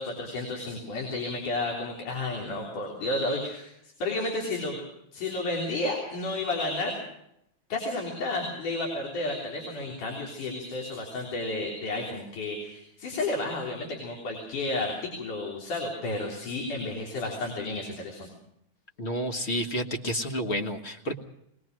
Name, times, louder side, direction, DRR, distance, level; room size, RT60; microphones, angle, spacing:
voice 1, 0.0-4.8 5.1-7.0 7.7-18.3, left 2 dB, 90° left, 0 dB, 5.0 m, -32 dB
voice 2, 19.0-21.1, equal, 35° left, 4 dB, 1.0 m, -30 dB
21.5 x 21.0 x 6.2 m, 0.78 s
omnidirectional pair, 3.5 m